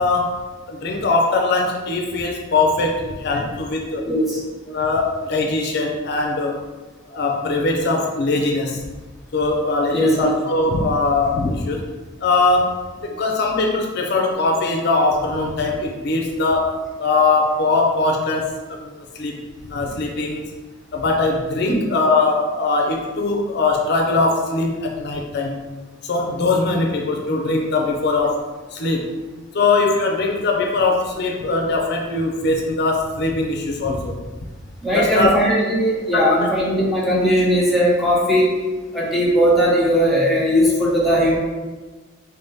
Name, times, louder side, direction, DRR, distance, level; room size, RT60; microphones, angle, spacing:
voice 1, 0.0-4.1 4.7-6.6 7.1-8.8 9.3-11.9 12.2-12.7 13.0-19.4 19.7-20.4 20.9-25.7 26.0-28.4 28.7-29.1 29.5-34.2 34.9-35.3 36.1-36.5, left 3 dB, 60° left, 1 dB, 0.4 m, -21 dB
voice 2, 4.1-4.4 9.9-10.3 21.7-21.8 34.8-38.5 38.9-41.4, equal, ahead, -7 dB, 0.9 m, -18 dB
3.8 x 3.4 x 2.7 m, 1.3 s
head